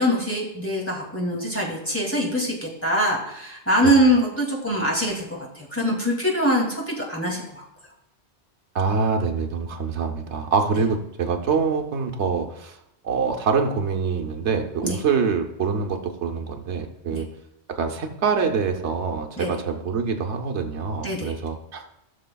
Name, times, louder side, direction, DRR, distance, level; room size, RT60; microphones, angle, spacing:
voice 1, 0.0-7.6 14.8-15.0 17.1-17.2 19.4-19.6 21.0-21.3, equal, 10° left, -2 dB, 2.4 m, -23 dB
voice 2, 8.7-12.8 13.0-17.3 17.7-21.9, right 5 dB, 85° right, 4 dB, 1.2 m, -25 dB
16.5 x 6.5 x 2.3 m, 0.80 s
omnidirectional pair, 1.1 m